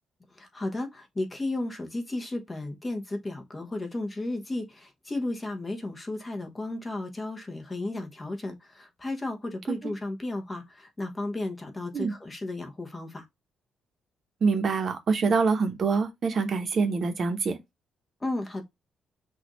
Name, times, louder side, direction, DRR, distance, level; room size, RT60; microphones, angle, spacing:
voice 1, 0.3-13.2 18.2-18.6, left 2 dB, 15° left, 1.1 m, -34 dB
voice 2, 14.4-17.6, right 4 dB, 40° right, 1.0 m, -25 dB
6.1 x 2.6 x 3.1 m
cardioid pair, 150°, 0 cm